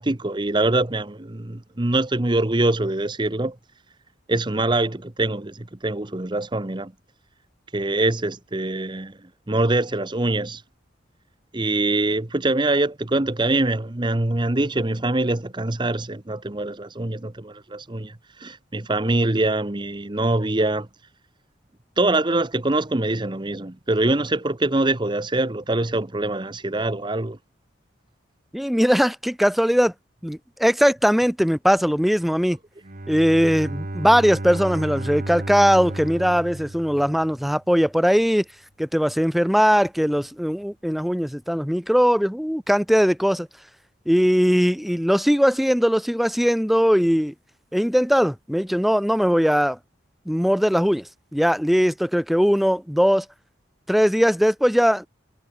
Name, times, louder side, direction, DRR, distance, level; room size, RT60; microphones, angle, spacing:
voice 1, 0.0-3.6 4.3-6.9 7.7-9.2 9.5-10.6 11.5-20.9 22.0-27.4, right 2 dB, 25° right, 1.0 m, -24 dB
voice 2, 28.5-29.9 30.2-32.6 33.1-38.4 38.8-43.5 44.1-47.3 47.7-49.8 50.3-53.3 53.9-55.1, equal, ahead, 0.6 m, -20 dB
Bowed string instrument, 32.8-37.6, right 1 dB, 45° right, 1.2 m, -33 dB
head